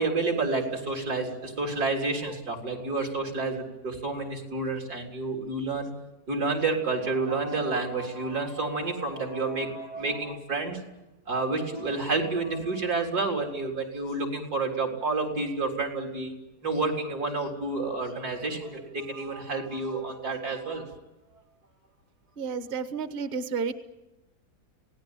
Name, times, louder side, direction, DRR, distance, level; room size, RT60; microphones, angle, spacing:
voice 1, 0.0-5.9 6.3-10.8 11.3-16.3 16.6-20.9, right 3 dB, 70° right, 2 dB, 4.5 m, -29 dB
voice 2, 22.4-23.7, right 5 dB, 35° right, 10 dB, 1.2 m, -31 dB
27.0 x 18.5 x 9.1 m, 1.0 s
omnidirectional pair, 1.7 m